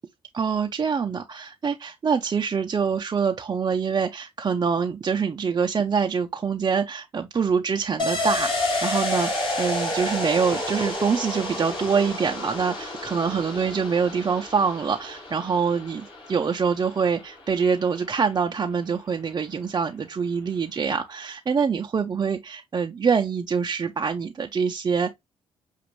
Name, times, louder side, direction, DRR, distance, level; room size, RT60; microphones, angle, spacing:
voice 1, 0.3-25.1, right 6 dB, 35° right, 0.5 m, -25 dB
sound 1, 8.0-17.4 17.7-17.8, left 2 dB, 45° left, 3.2 m, -30 dB
6.0 x 2.5 x 3.0 m
supercardioid pair, 65°, 11 cm